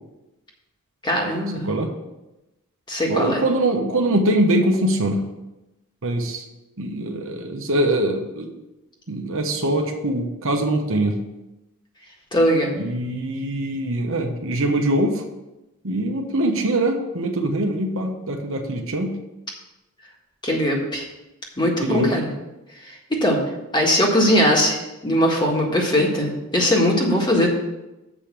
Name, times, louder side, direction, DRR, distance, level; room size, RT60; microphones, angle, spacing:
voice 1, 1.0-1.7 2.9-3.4 12.3-12.8 20.4-21.0 21.6-22.3 22.8-23.4 23.7-27.5, equal, 20° left, -1 dB, 1.6 m, -20 dB
voice 2, 3.1-5.2 6.0-6.4 6.8-8.5 9.1-11.2 12.8-15.2 15.8-19.2 21.8-22.1, right 1 dB, 60° right, 3 dB, 1.1 m, -23 dB
7.3 x 5.2 x 7.4 m, 0.98 s
head